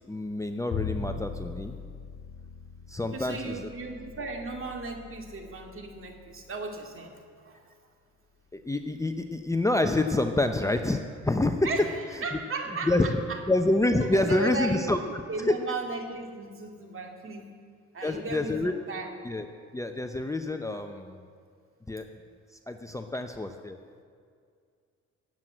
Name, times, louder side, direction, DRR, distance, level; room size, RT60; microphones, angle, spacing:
voice 1, 0.1-1.7 2.9-3.7 8.5-11.7 12.3-12.4 12.8-13.1 13.5-15.0 15.5-15.6 18.0-18.7 19.2-19.4 19.7-21.2 21.9-22.1 22.7-23.8, left 2 dB, 10° left, 6 dB, 0.8 m, -27 dB
Bowed string instrument, 0.7-6.9, left 5 dB, 55° left, 4.3 m, -40 dB
voice 2, 3.0-7.7 11.6-13.4 14.0-15.0 15.3-17.5 17.9-19.2, right 3 dB, 45° right, 3 dB, 2.4 m, -36 dB
18.5 x 7.7 x 7.6 m, 2.2 s
cardioid pair, 90°, 30 cm